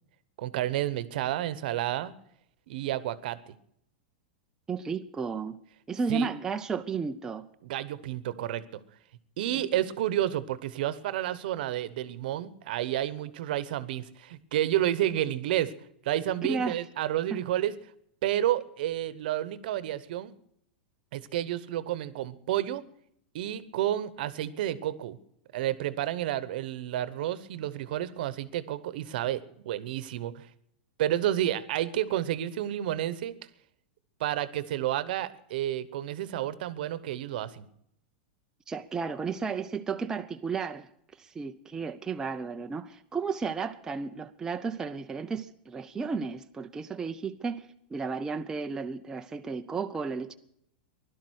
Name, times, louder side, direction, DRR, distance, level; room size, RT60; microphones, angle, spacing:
voice 1, 0.4-2.1 2.7-3.4 6.1-6.3 7.6-8.8 9.4-15.7 16.0-17.7 18.2-20.3 21.1-22.8 23.3-25.2 25.5-30.5 31.0-33.3 34.2-37.6, right 12 dB, 65° right, 1.0 m, -30 dB
voice 2, 4.7-5.6 5.9-7.5 16.4-16.8 17.3-17.4 38.7-40.9 41.2-50.3, right 5 dB, 10° right, 0.5 m, -33 dB
16.5 x 12.0 x 6.3 m
supercardioid pair, 150°, 5 cm